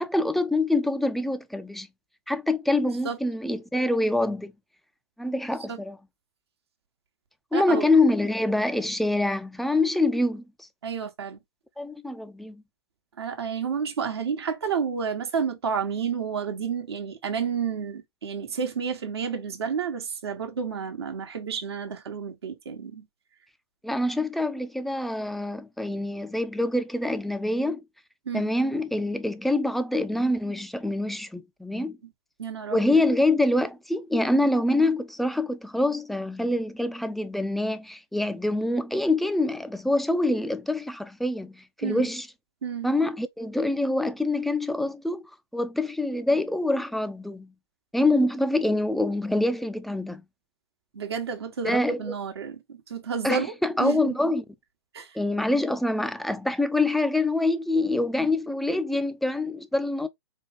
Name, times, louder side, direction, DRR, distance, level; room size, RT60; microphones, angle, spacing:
voice 1, 0.0-1.9 2.3-4.5 5.2-6.0 7.5-10.7 11.8-12.6 23.8-27.8 28.3-32.0 32.7-42.3 42.8-45.2 45.5-47.5 47.9-50.2 51.6-52.1 53.2-54.4 55.1-60.1, left 2 dB, ahead, 0.3 m, -25 dB
voice 2, 7.5-7.9 10.8-11.4 13.2-23.0 28.3-28.5 32.4-33.0 41.8-42.1 42.6-42.9 50.9-53.5 53.8-54.0 54.9-55.1, right 6 dB, 70° right, 1.0 m, -30 dB
4.6 x 2.3 x 3.3 m
figure-of-eight pair, 115°, 14 cm